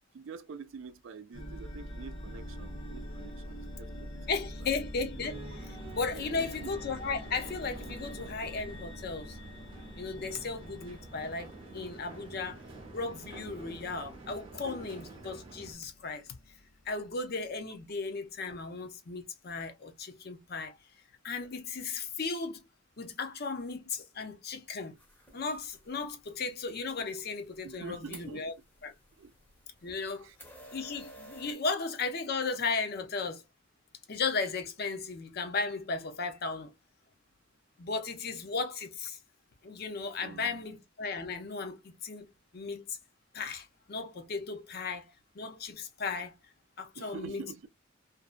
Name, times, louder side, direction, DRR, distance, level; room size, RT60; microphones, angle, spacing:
voice 1, 0.1-4.4 4.7-4.8 5.1-5.3 6.1-6.7 27.6-28.5 29.2-29.3 30.2-30.4 40.2-40.7 46.9-47.7, right 5 dB, 65° right, 0.4 m, -46 dB
sound 1, 1.3-17.4, equal, 90° left, 0.8 m, -46 dB
voice 2, 4.3-9.4 10.0-12.6 12.9-16.2 16.9-20.8 21.2-22.6 23.0-25.0 25.3-28.5 28.8-28.9 29.8-30.3 30.7-33.4 34.1-36.7 37.8-39.2 39.6-43.0 43.3-45.0 45.4-46.3 46.8-47.4, left 4 dB, 50° left, 0.6 m, -36 dB
sound 2, 5.2-15.7, right 2 dB, 25° right, 0.7 m, -48 dB
sound 3, 25.0-31.5, right 1 dB, 10° left, 0.7 m, -54 dB
2.6 x 2.2 x 2.3 m
head